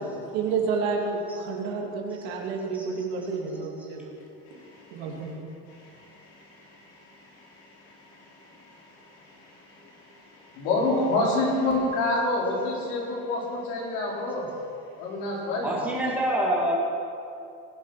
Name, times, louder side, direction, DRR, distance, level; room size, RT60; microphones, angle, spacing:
voice 1, 0.3-4.1 4.5-4.6 4.9-5.3, right 4 dB, 80° right, 0 dB, 2.8 m, -30 dB
voice 2, 4.5-5.3 5.7-14.5 15.0-15.7, left 2 dB, 55° left, -3 dB, 3.7 m, -30 dB
voice 3, 15.6-16.7, right 1 dB, 5° right, -6 dB, 2.8 m, -26 dB
20.5 x 7.4 x 6.0 m, 2.6 s
cardioid pair, 170°, 30 cm